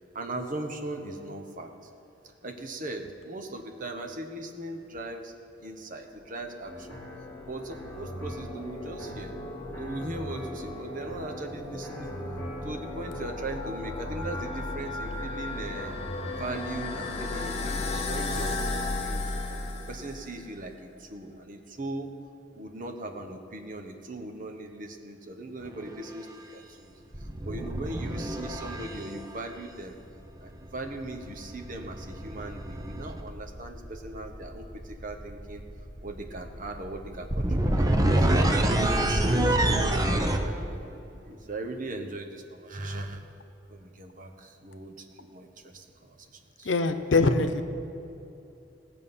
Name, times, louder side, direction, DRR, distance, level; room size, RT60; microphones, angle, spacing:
voice 1, 0.1-1.7 2.4-5.3 5.6-7.0 7.4-9.3 9.8-12.2 12.6-15.9 16.3-22.1 22.5-26.9 27.4-30.0 30.4-35.6 36.0-38.5 38.9-39.6 40.1-43.2 43.7-46.2 46.6-46.7, right 2 dB, 45° right, 3 dB, 1.2 m, -39 dB
sound 1, 6.3-20.5, left 2 dB, 35° left, 1.1 m, -35 dB
sound 2, 6.7-17.5, equal, 15° left, 2.2 m, -43 dB
sound 3, 25.7-25.9 27.1-29.3 31.1-40.4, right 1 dB, 20° right, 0.9 m, -27 dB
voice 2, 46.6-47.6, left 3 dB, 90° left, 9 dB, 0.8 m, -23 dB
18.5 x 7.5 x 5.6 m, 2.9 s
head